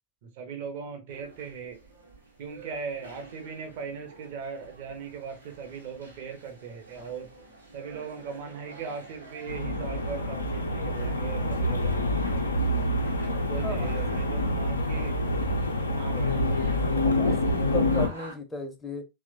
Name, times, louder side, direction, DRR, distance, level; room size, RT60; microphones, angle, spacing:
voice 1, 0.2-1.8 2.4-7.3 7.7-12.1 13.5-15.2 16.0-16.6 16.9-17.4, right 6 dB, 50° right, 0.6 m, -39 dB
sound 1, 1.1-18.4, right 2 dB, 85° right, 0.8 m, -49 dB
sound 2, 9.5-18.1, left 1 dB, 80° left, 0.4 m, -27 dB
voice 2, 13.6-14.7 17.2-19.1, left 1 dB, 10° left, 0.5 m, -36 dB
2.9 x 2.0 x 2.5 m
figure-of-eight pair, 90°, 0 cm